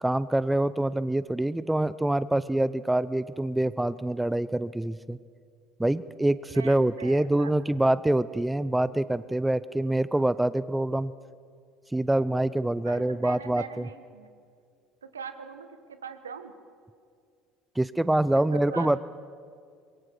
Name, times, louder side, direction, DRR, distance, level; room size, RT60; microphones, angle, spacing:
voice 1, 0.0-5.2 5.8-11.1 11.9-13.9 17.8-19.0, right 1 dB, 10° right, 17 dB, 0.7 m, -25 dB
voice 2, 6.5-7.6 12.8-14.3 15.0-16.5 18.3-19.0, right 6 dB, 80° right, 10 dB, 1.5 m, -42 dB
26.5 x 22.5 x 6.2 m, 2.2 s
figure-of-eight pair, 60°, 0 cm